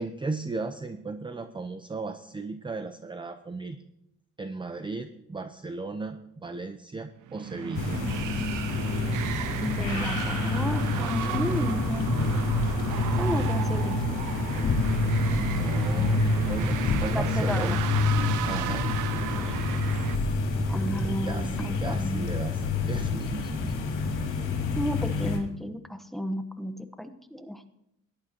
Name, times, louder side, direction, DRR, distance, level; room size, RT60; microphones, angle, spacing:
voice 1, 0.0-3.8 4.4-8.0 15.3-16.2 16.5-17.8 18.5-18.9 21.2-23.8, right 3 dB, 15° right, 9 dB, 0.6 m, -35 dB
sound 1, 7.3-20.2, right 12 dB, 80° right, 0.6 m, -35 dB
sound 2, 7.7-25.4, left 3 dB, 80° left, 3.1 m, -27 dB
voice 2, 9.6-12.1 13.2-14.0 17.1-17.8 19.3-19.6 20.7-22.3 24.7-27.6, equal, ahead, 9 dB, 1.1 m, -33 dB
18.0 x 11.5 x 2.9 m, 0.81 s
cardioid pair, 90°, 30 cm